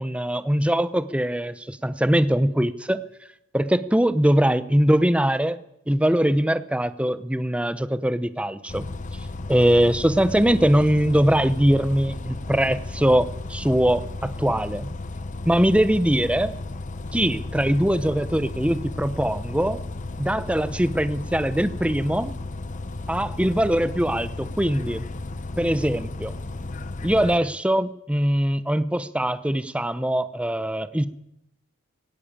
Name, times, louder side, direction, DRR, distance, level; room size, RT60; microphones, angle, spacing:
voice 1, 0.0-3.0 3.5-5.6 5.9-8.9 9.5-14.9 15.5-16.5 17.1-19.8 20.2-22.3 23.1-25.1 25.6-26.3 27.0-31.1, right 1 dB, 5° right, 13 dB, 0.7 m, -22 dB
Bus, 8.7-27.4, left 2 dB, 35° left, 0.8 m, -34 dB
17.5 x 17.0 x 8.9 m, 0.82 s
head